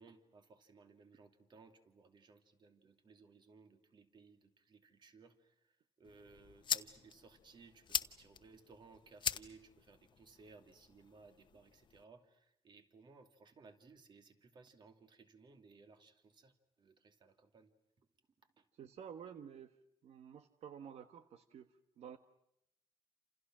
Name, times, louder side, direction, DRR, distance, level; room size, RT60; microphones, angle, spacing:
voice 1, 0.0-18.1 18.4-18.7, right 4 dB, 45° right, 7 dB, 2.6 m, -61 dB
sound 1, 6.0-12.0, left 7 dB, 45° left, 1.0 m, -43 dB
voice 2, 18.7-19.8 20.0-22.2, right 8 dB, 75° right, 9 dB, 1.3 m, -51 dB
29.0 x 28.5 x 6.2 m, 0.78 s
wide cardioid pair, 170°, 11 cm